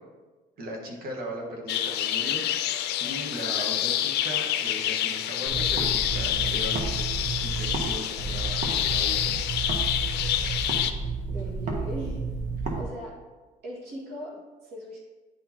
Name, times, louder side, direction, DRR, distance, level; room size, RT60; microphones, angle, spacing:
voice 1, 0.6-2.4 3.0-7.1 7.4-9.4, right 1 dB, 65° right, 0 dB, 1.5 m, -38 dB
sound 1, 1.7-10.9, left 11 dB, 80° left, 0.5 m, -27 dB
sound 2, 5.5-7.9 8.2-12.8, right 4 dB, 45° right, 1.1 m, -31 dB
voice 2, 11.3-12.3 12.7-13.1 13.6-15.0, equal, 80° right, -4 dB, 1.9 m, -39 dB
9.7 x 4.0 x 2.9 m, 1.3 s
cardioid pair, 110°, 17 cm